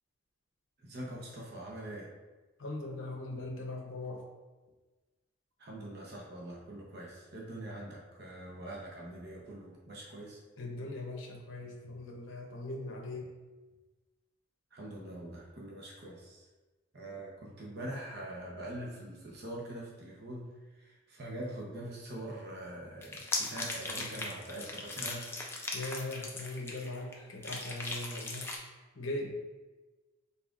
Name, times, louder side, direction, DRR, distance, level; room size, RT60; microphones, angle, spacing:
voice 1, 0.8-2.1 5.6-10.4 14.7-16.5 16.9-20.4 20.7-25.2 27.2-27.3, right 1 dB, 50° right, -3 dB, 0.8 m, -43 dB
voice 2, 2.6-4.2 10.6-13.3 25.7-28.5 28.9-29.3, left 2 dB, 65° left, 0 dB, 0.8 m, -40 dB
sound 1, 23.0-27.1 27.4-28.6, left 2 dB, 10° left, 0.4 m, -38 dB
5.6 x 3.8 x 2.4 m, 1.2 s
head